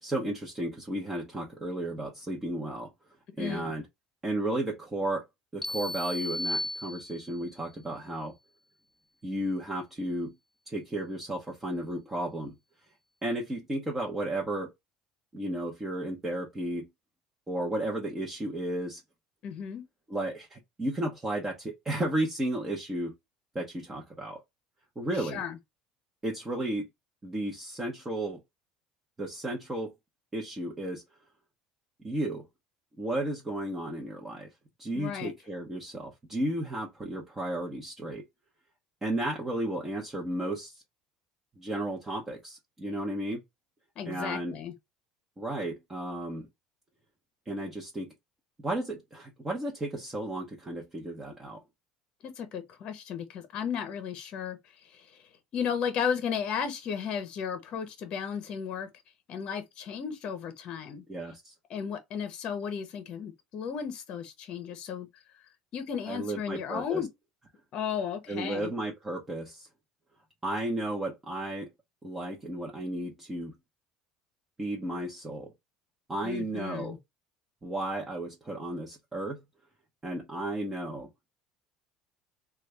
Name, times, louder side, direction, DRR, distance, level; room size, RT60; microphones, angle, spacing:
voice 1, 0.0-2.9 3.4-3.9 4.2-5.2 5.5-8.3 9.2-10.3 10.7-12.6 13.2-14.7 15.3-16.9 17.5-19.0 20.1-23.1 23.5-24.4 25.0-25.4 26.2-26.9 27.2-28.4 29.2-29.9 30.3-31.0 32.0-32.4 33.0-34.5 34.8-38.2 39.0-40.8 41.6-43.4 44.0-44.5 45.4-46.5 47.5-48.1 48.6-51.6 61.1-61.5 66.1-67.0 68.3-69.7 70.4-71.7 72.0-73.5 74.6-75.5 76.1-77.0 77.6-79.4 80.0-81.1, right 1 dB, 15° right, 0.9 m, -33 dB
voice 2, 3.4-3.7 19.4-19.8 25.2-25.6 34.9-35.3 44.0-44.7 52.2-55.2 55.5-58.9 59.3-61.0 61.7-65.2 65.7-67.1 67.7-68.7 76.2-77.0, left 7 dB, 50° left, 0.7 m, -34 dB
sound 1, 5.6-7.5, left 1 dB, 10° left, 0.3 m, -34 dB
3.2 x 2.3 x 3.2 m
supercardioid pair, 120°, 2 cm